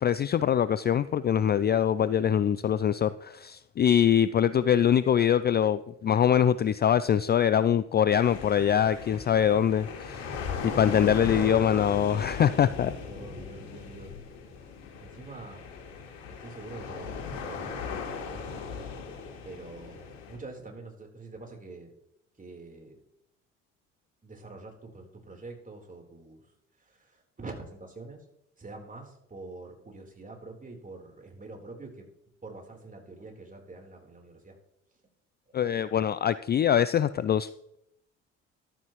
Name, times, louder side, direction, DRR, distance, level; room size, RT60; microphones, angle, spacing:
voice 1, 0.0-10.2 10.6-12.9 35.5-37.5, left 9 dB, 25° left, 15 dB, 0.5 m, -23 dB
sound 1, 8.2-20.4, left 5 dB, 65° left, 3.3 m, -38 dB
voice 2, 13.1-14.2 15.0-15.7 16.3-18.9 19.4-21.9 22.4-23.0 24.2-26.4 26.8-28.2 28.6-32.1 32.4-34.6, right 3 dB, 20° right, 1 dB, 4.1 m, -45 dB
14.0 x 12.0 x 3.2 m, 0.78 s
figure-of-eight pair, 55°, 37 cm